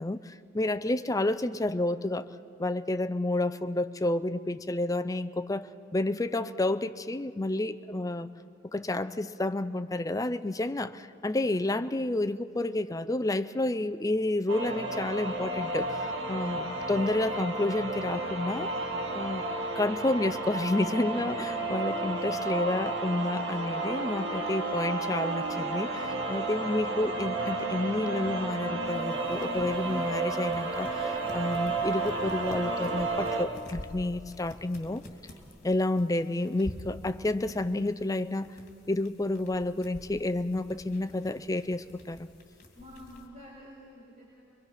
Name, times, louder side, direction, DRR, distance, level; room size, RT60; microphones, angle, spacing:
voice 1, 0.0-2.3 2.6-8.3 8.6-18.7 19.1-19.4 19.7-35.0 35.6-38.6 38.9-42.3, left 2 dB, 20° left, 11 dB, 0.5 m, -30 dB
sound 1, 14.5-33.4, right 2 dB, 65° right, 1.6 m, -32 dB
sound 2, 28.8-43.3, left 1 dB, 40° left, 2.7 m, -49 dB
voice 2, 42.7-44.4, equal, 40° right, -5 dB, 4.1 m, -49 dB
23.5 x 22.0 x 5.7 m, 2.8 s
head